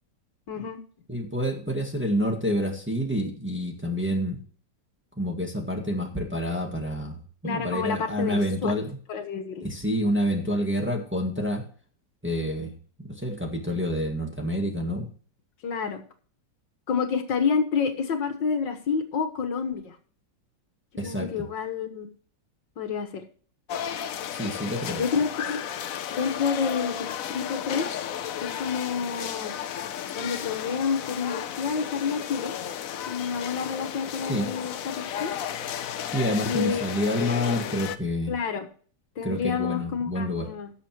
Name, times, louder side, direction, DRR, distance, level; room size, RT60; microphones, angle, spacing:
voice 1, 0.5-0.8 7.4-8.7 9.1-9.7 15.6-16.0 16.9-20.0 21.0-22.1 22.8-23.2 24.9-25.7 26.1-27.9 28.4-29.5 30.2-32.5 33.1-35.3 36.5-36.8 38.3-38.7 39.2-40.7, left 6 dB, 80° left, 6 dB, 2.0 m, -29 dB
voice 2, 1.1-4.4 5.2-9.0 9.6-11.6 12.2-12.7 13.1-15.1 21.0-21.5 24.3-25.0 34.3-34.5 36.1-38.3 39.2-40.5, equal, 5° right, 1 dB, 1.6 m, -28 dB
sound 1, 23.7-38.0, left 9 dB, 60° left, 1.0 m, -34 dB
17.5 x 7.0 x 3.0 m, 0.44 s
omnidirectional pair, 2.0 m